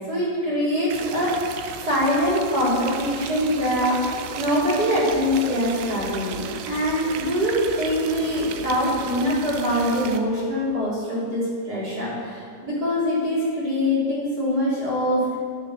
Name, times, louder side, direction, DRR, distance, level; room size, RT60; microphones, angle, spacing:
voice 1, 0.1-1.5 1.8-15.4, equal, 30° right, -8 dB, 3.7 m, -23 dB
sound 1, 0.9-10.2, right 7 dB, 80° right, 2.0 m, -35 dB
9.9 x 6.7 x 6.2 m, 2.1 s
omnidirectional pair, 3.3 m